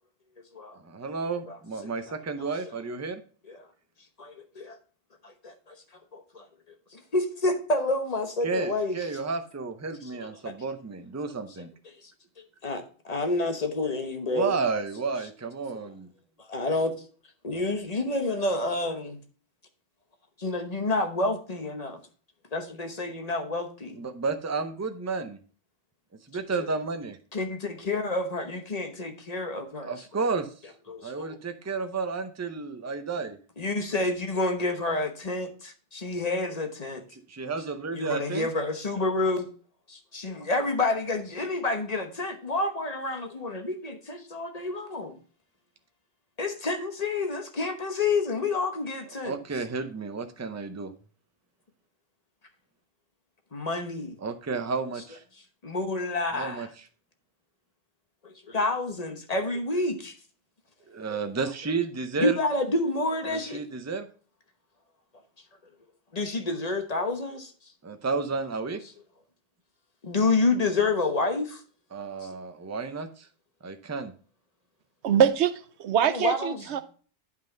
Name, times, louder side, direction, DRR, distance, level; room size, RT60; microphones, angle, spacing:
voice 1, 0.7-3.2 8.4-11.7 14.3-16.1 24.0-25.4 26.3-27.2 29.7-30.5 31.0-33.4 37.3-38.5 49.2-50.9 54.2-55.2 56.3-56.7 60.9-62.4 63.3-64.1 67.8-68.8 71.9-73.3 73.6-74.1, right 4 dB, 20° right, 7 dB, 0.6 m, -32 dB
voice 2, 4.2-4.8 5.2-5.7 6.1-6.4 6.9-9.0 10.2-10.3 12.6-14.5 16.5-16.9 17.4-19.2 20.4-22.0 22.5-24.0 26.3-26.7 27.3-29.9 30.9-31.4 33.6-37.0 37.9-39.5 39.9-45.2 46.4-49.4 53.5-54.2 55.6-56.7 58.2-60.1 62.2-63.6 66.1-67.5 70.0-71.6 76.1-76.6, left 2 dB, 35° left, 5 dB, 1.1 m, -29 dB
voice 3, 75.0-75.5 75.8-76.8, right 9 dB, 70° right, 12 dB, 0.9 m, -23 dB
9.4 x 5.6 x 3.9 m, 0.41 s
omnidirectional pair, 1.2 m